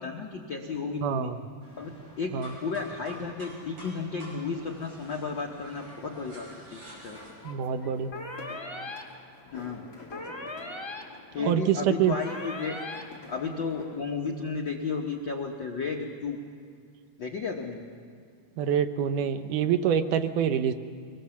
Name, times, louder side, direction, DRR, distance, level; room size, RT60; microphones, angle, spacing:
voice 1, 0.0-1.3 1.8-7.2 9.5-9.9 11.3-12.8 13.3-16.4 17.2-17.8, left 4 dB, 70° left, 1 dB, 1.1 m, -33 dB
voice 2, 1.0-1.4 2.3-2.5 7.4-8.1 11.4-12.2 18.6-20.7, right 8 dB, 75° right, 9 dB, 2.2 m, -26 dB
sound 1, 1.6-7.3, equal, 40° right, 6.8 m, -47 dB
sound 2, 6.8-14.0, left 3 dB, 30° left, 3.0 m, -49 dB
sound 3, 8.1-9.0 10.1-11.0 12.1-13.0, left 2 dB, 50° left, 0.3 m, -38 dB
23.5 x 20.5 x 7.1 m, 2.3 s
omnidirectional pair, 3.9 m